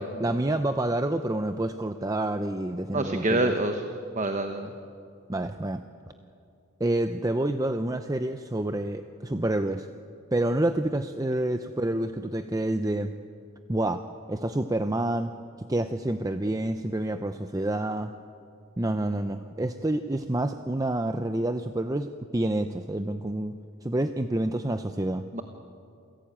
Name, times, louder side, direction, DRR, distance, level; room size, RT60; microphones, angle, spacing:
voice 1, 0.0-3.5 5.3-5.8 6.8-9.9 10.3-13.1 13.7-15.3 15.7-18.1 18.8-23.5 23.8-25.3, right 1 dB, 15° right, 8 dB, 0.5 m, -28 dB
voice 2, 2.9-3.8 4.1-4.7 25.3-25.4, right 2 dB, 35° right, 6 dB, 1.1 m, -27 dB
28.0 x 16.5 x 8.8 m, 2.5 s
head